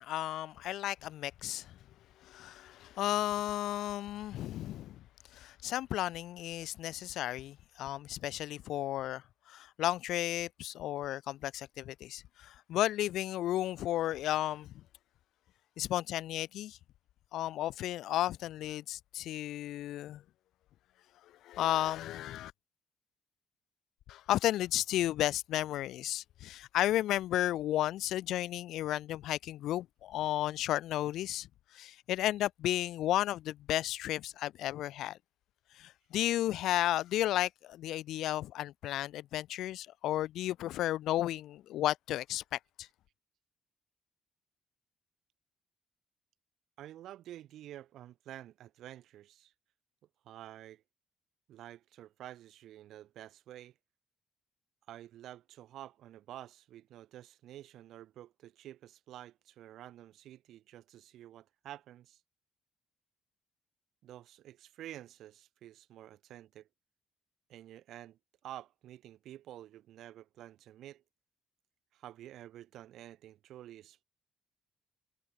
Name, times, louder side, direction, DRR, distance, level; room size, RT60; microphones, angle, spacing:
voice 1, 0.0-1.8 2.2-5.0 5.3-14.8 15.8-16.8 17.3-20.2 21.4-22.5 24.1-31.5 31.7-35.2 35.7-42.9, left 13 dB, 85° left, 0.5 m, -33 dB
voice 2, 46.8-49.5 50.2-50.8 51.5-53.7 54.9-62.2 64.0-66.7 67.5-71.0 71.9-74.0, right 12 dB, 80° right, 1.8 m, -50 dB
cardioid pair, 90°, 0 cm